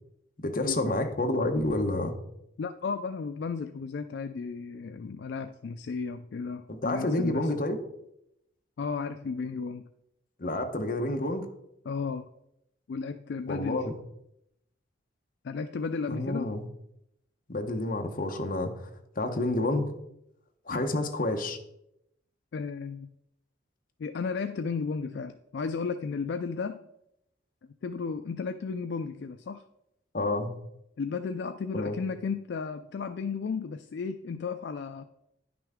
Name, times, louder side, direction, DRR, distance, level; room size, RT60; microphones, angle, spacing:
voice 1, 0.4-2.2 6.7-7.8 10.4-11.5 13.5-14.0 16.1-16.6 17.5-18.9 19.2-19.9 20.7-21.6 30.1-30.5 31.7-32.0, left 2 dB, 45° left, 5 dB, 0.9 m, -29 dB
voice 2, 2.6-7.5 8.8-9.9 11.9-12.3 12.9-13.9 15.4-16.5 20.7-20.8 22.5-23.1 24.0-26.8 27.8-29.6 31.0-35.1, left 5 dB, 60° left, 9 dB, 0.3 m, -34 dB
10.0 x 6.0 x 3.6 m, 0.80 s
head